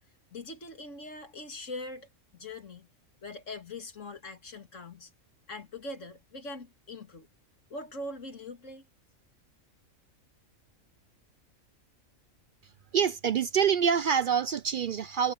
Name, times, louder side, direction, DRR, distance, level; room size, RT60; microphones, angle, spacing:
voice 1, 0.3-2.9 3.2-5.1 5.5-7.3 7.7-8.9, left 2 dB, 65° left, 2.6 m, -42 dB
voice 2, 12.9-15.3, right 7 dB, 65° right, 0.5 m, -26 dB
omnidirectional pair, 1.4 m